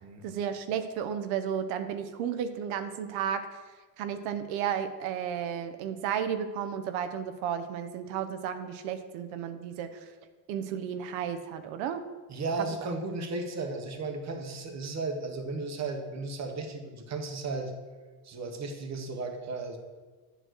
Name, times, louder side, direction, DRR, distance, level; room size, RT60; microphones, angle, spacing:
voice 1, 0.2-3.5 4.0-10.0 10.5-12.0, right 8 dB, 75° right, 9 dB, 0.8 m, -33 dB
voice 2, 12.3-17.7 18.2-19.8, right 3 dB, 35° right, 4 dB, 1.2 m, -35 dB
9.1 x 3.2 x 6.3 m, 1.4 s
supercardioid pair, 95°, 46 cm